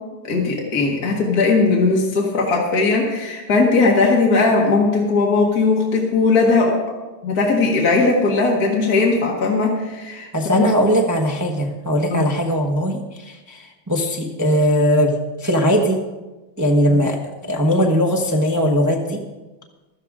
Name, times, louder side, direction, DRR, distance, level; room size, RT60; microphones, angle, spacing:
voice 1, 0.3-6.8 7.2-10.6 12.1-12.3 16.9-17.0, left 3 dB, 45° left, -2 dB, 2.1 m, -18 dB
voice 2, 10.3-15.1 15.4-16.0 16.6-17.2 17.5-19.2, equal, 15° right, 1 dB, 0.7 m, -19 dB
16.0 x 12.5 x 3.7 m, 1.1 s
omnidirectional pair, 2.4 m